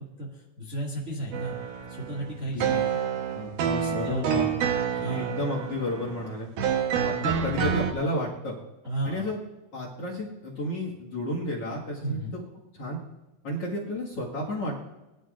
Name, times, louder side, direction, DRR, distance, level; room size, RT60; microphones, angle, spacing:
voice 1, 0.0-1.6 1.9-3.0 3.8-5.4 7.2-7.5 8.8-9.3 12.0-12.4, right 1 dB, 25° right, -3 dB, 2.0 m, -35 dB
sound 1, 1.3-7.9, right 7 dB, 65° right, 2.3 m, -28 dB
voice 2, 3.3-4.5 5.0-6.5 7.0-8.6 9.0-9.4 9.7-12.4 12.8-13.0 13.4-14.8, left 1 dB, 45° left, -1 dB, 2.4 m, -32 dB
21.5 x 12.5 x 2.6 m, 1.0 s
omnidirectional pair, 4.6 m